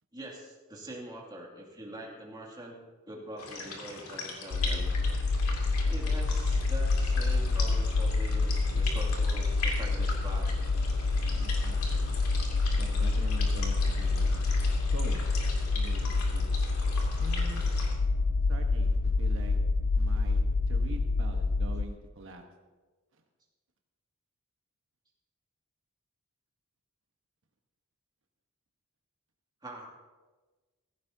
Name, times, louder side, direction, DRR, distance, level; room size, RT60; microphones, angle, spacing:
voice 1, 0.1-2.8 3.1-4.9 5.9-10.6 29.6-29.9, right 1 dB, 20° right, -2 dB, 2.4 m, -44 dB
sound 1, 3.4-17.9, left 3 dB, 85° left, 2.5 m, -41 dB
sound 2, 4.5-21.8, left 3 dB, 55° left, 0.4 m, -27 dB
voice 2, 11.3-12.1 12.7-14.5 14.9-15.3 15.7-16.5 17.2-17.7 18.5-19.6 19.9-22.4 23.1-23.2, right 2 dB, 60° right, 3 dB, 1.2 m, -45 dB
16.0 x 15.5 x 2.8 m, 1.3 s
head